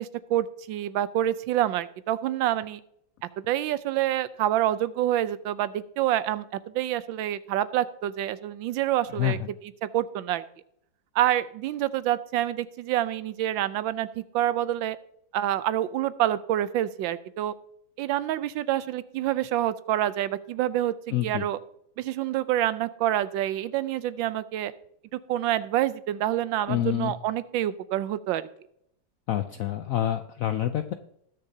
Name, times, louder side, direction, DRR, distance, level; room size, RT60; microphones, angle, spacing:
voice 1, 0.0-2.8 3.5-6.4 6.7-9.4 9.8-10.4 11.1-15.0 15.3-17.5 18.0-21.6 22.0-24.7 25.3-28.5, right 12 dB, 90° right, 15 dB, 1.3 m, -27 dB
voice 2, 9.2-9.5 21.1-21.5 26.7-27.1 29.3-30.9, left 12 dB, 85° left, 8 dB, 0.7 m, -27 dB
20.0 x 6.7 x 2.7 m, 0.71 s
omnidirectional pair, 2.0 m